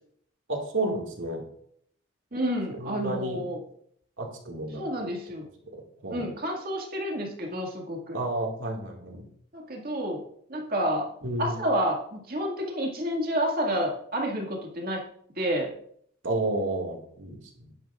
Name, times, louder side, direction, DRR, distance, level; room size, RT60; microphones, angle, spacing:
voice 1, 0.5-1.4 2.7-3.4 4.2-5.1 6.0-6.2 8.1-9.3 11.2-11.6 16.2-17.7, right 2 dB, 75° right, 0 dB, 2.2 m, -31 dB
voice 2, 2.3-3.6 4.8-5.4 6.1-8.2 9.5-10.2 10.5-11.1 11.4-15.0 15.4-15.7, equal, 45° right, 0 dB, 2.1 m, -29 dB
11.0 x 10.5 x 2.5 m, 0.66 s
head